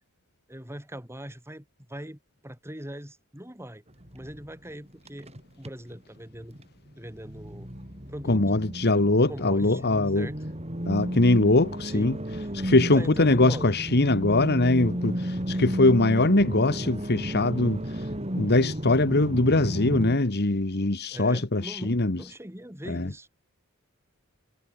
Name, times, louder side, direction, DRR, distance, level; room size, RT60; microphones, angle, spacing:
voice 1, 0.5-3.8 4.1-5.3 5.6-6.6 6.9-7.7 8.1-8.4 9.3-10.4 11.5-11.6 11.8-12.2 12.8-13.8 21.1-23.3, right 1 dB, 10° right, 4.8 m, -41 dB
sound 1, 4.0-6.6 6.9-20.2, equal, 30° right, 4.9 m, -33 dB
voice 2, 8.3-10.3 10.9-12.2 12.5-18.1 18.4-22.2 22.9-23.1, left 2 dB, 50° left, 1.6 m, -22 dB
head